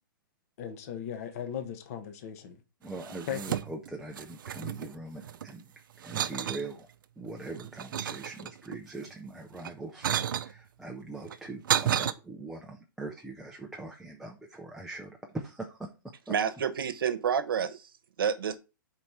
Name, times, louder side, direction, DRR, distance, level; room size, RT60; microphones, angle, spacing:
voice 1, 0.6-2.6 3.3-3.6, left 9 dB, 45° left, 1.0 m, -37 dB
voice 2, 2.8-5.7 6.0-6.9 7.2-15.9 16.3-16.4, right 2 dB, ahead, 0.4 m, -42 dB
sound 1, 2.9-3.9 4.2-5.5 6.0-6.7 7.3-8.8 9.5-10.5 11.3-12.1, right 10 dB, 65° right, 0.5 m, -32 dB
voice 3, 16.3-17.9 18.2-18.6, right 7 dB, 80° right, 0.9 m, -29 dB
4.7 x 4.4 x 5.4 m
hypercardioid pair, 155°, 12 cm